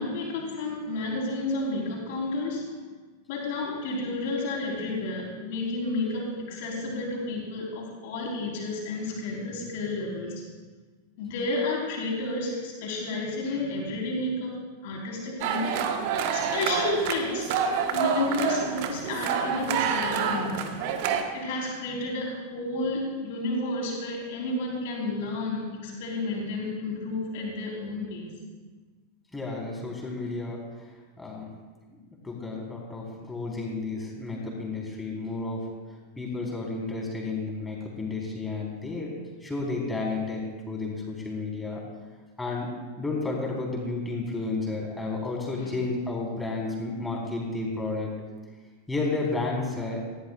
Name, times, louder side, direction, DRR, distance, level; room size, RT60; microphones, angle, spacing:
voice 1, 0.0-2.6 3.3-10.4 11.2-14.5 14.8-15.8 16.3-17.5 17.9-20.7 21.3-28.3 45.6-45.7, left 2 dB, 50° left, -2 dB, 4.4 m, -31 dB
sound 1, 15.4-21.2, right 7 dB, 45° right, 1.4 m, -28 dB
voice 2, 29.3-30.6 31.2-31.5 31.9-35.7 36.2-39.1 39.4-41.8 42.4-48.1 48.9-50.0, left 3 dB, 10° left, -3 dB, 4.3 m, -32 dB
19.0 x 16.0 x 2.5 m, 1.3 s
figure-of-eight pair, 90°, 0 cm